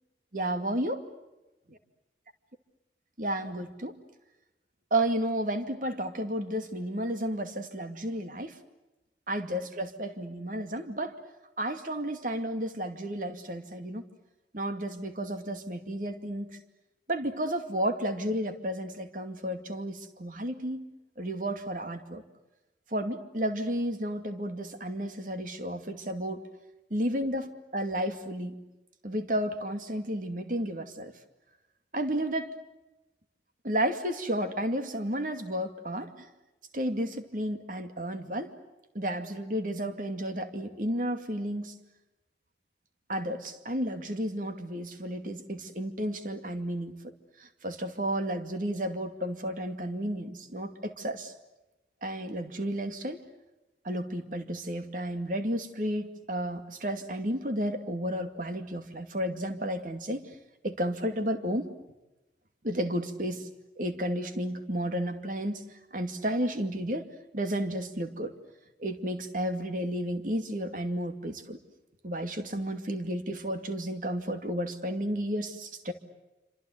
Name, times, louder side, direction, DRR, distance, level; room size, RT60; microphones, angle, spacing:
voice 1, 0.3-1.0 1.7-1.8 3.2-4.0 4.9-8.5 9.3-11.1 11.6-14.0 14.5-16.5 17.1-20.9 21.2-22.2 22.9-26.4 26.9-28.5 29.0-31.1 31.9-32.5 33.6-36.1 36.7-38.5 38.9-41.7 43.1-46.9 47.6-51.3 52.0-53.2 53.8-60.2 60.6-61.7 62.6-63.5 63.8-65.6 65.9-67.1 67.3-68.3 68.8-71.6 72.0-75.9, right 1 dB, 50° right, 7 dB, 2.4 m, -32 dB
27.5 x 26.5 x 8.0 m, 0.99 s
head